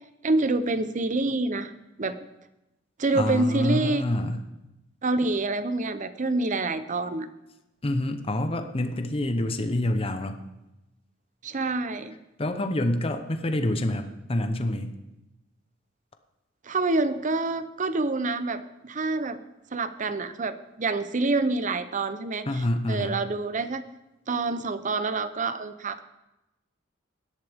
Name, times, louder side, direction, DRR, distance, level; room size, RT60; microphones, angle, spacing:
voice 1, 0.2-1.7 2.0-2.2 3.0-4.1 5.0-7.3 11.4-12.2 16.6-19.4 19.7-23.8 24.3-26.0, right 3 dB, 40° right, 12 dB, 0.7 m, -27 dB
voice 2, 3.1-4.4 7.8-10.4 12.4-14.9 22.5-23.2, left 1 dB, 30° left, 7 dB, 0.8 m, -27 dB
17.0 x 11.5 x 3.6 m, 0.95 s
head